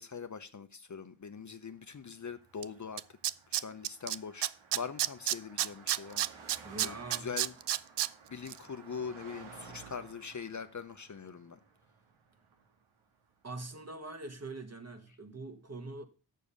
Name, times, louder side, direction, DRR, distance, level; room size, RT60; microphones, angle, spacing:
voice 1, 0.0-3.0 3.5-4.5 4.7-6.3 6.8-7.5 8.3-11.6, left 6 dB, 35° left, 0.8 m, -42 dB
Car passing by, 1.8-13.4, right 5 dB, 80° right, 2.0 m, -55 dB
Tools, 2.6-2.7 3.0-4.2 4.4-8.1 8.5-8.6, right 13 dB, 60° right, 0.5 m, -30 dB
voice 2, 6.6-7.4 13.4-16.1, right 2 dB, 30° right, 1.7 m, -43 dB
7.0 x 6.5 x 6.8 m
cardioid pair, 65°, 48 cm